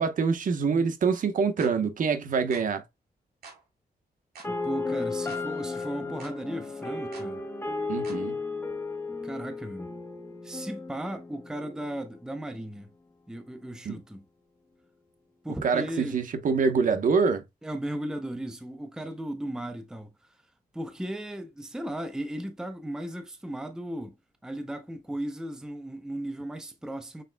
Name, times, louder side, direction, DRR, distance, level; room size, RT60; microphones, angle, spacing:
voice 1, 0.0-2.8 7.9-8.3 13.9-14.0 15.6-17.4, right 5 dB, 60° right, 0.9 m, -25 dB
sound 1, 1.6-1.8 2.5-2.7 3.4-3.6 4.3-4.5 5.3-5.5 6.2-6.4 7.1-7.3 8.0-8.2, right 4 dB, 90° right, 3.2 m, -47 dB
sound 2, 4.4-12.4, left 3 dB, 15° left, 1.0 m, -34 dB
voice 2, 4.5-7.4 9.2-9.9 10.4-12.9 13.3-14.3 15.4-16.2 17.6-20.4 20.7-24.2 24.4-27.2, right 1 dB, 5° right, 0.6 m, -36 dB
6.6 x 3.6 x 2.2 m
wide cardioid pair, 115°, 16 cm